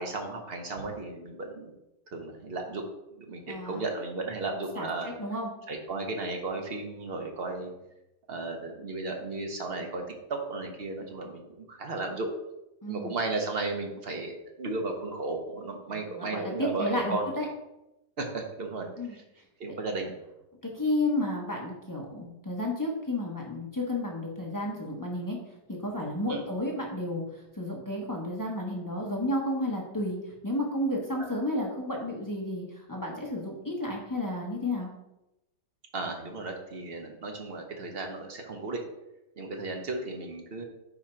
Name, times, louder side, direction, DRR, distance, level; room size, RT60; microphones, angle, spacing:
voice 1, 0.0-1.7 2.1-2.8 3.2-5.1 5.7-7.7 8.3-12.3 12.9-17.2 18.2-19.2 19.6-20.1 26.3-26.5 35.9-38.8 39.4-40.6, right 3 dB, 45° right, 3 dB, 0.8 m, -34 dB
voice 2, 3.5-3.8 4.8-4.9 5.2-5.5 12.8-13.1 16.2-17.5 19.0-19.1 20.6-25.4 25.7-27.2 27.6-30.2 30.4-34.9, left 1 dB, 20° left, -2 dB, 0.6 m, -32 dB
4.9 x 4.9 x 4.3 m, 0.90 s
omnidirectional pair, 1.9 m